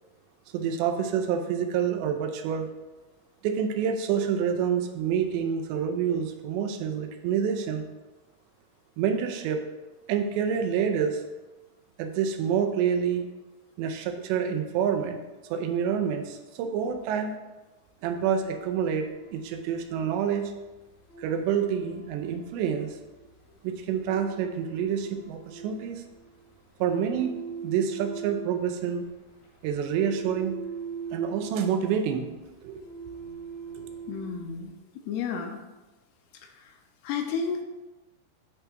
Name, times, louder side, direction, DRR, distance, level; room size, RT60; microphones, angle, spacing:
voice 1, 0.5-2.7 3.4-7.9 9.0-9.6 10.1-11.2 12.0-13.2 13.8-15.2 15.5-17.3 18.0-20.5 21.2-23.0 23.6-26.0 26.8-27.4 27.6-29.1 29.6-30.6 31.1-32.8, right 7 dB, 85° right, 6 dB, 2.9 m, -27 dB
sound 1, 18.1-34.7, right 6 dB, 60° left, 1.8 m, -42 dB
voice 2, 34.1-34.7 35.0-35.6 36.6-36.7 37.0-37.6, left 6 dB, 80° left, 4 dB, 2.6 m, -32 dB
9.5 x 3.4 x 6.1 m, 1.1 s
omnidirectional pair, 4.9 m